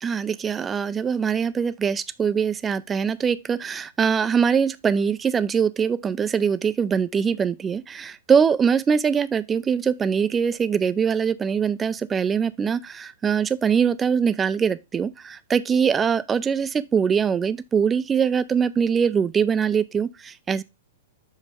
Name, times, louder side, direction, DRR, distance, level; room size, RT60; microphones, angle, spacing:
voice 1, 0.0-20.6, right 6 dB, 15° right, 0.4 m, -22 dB
6.5 x 5.2 x 3.4 m
hypercardioid pair, 130°, 0 cm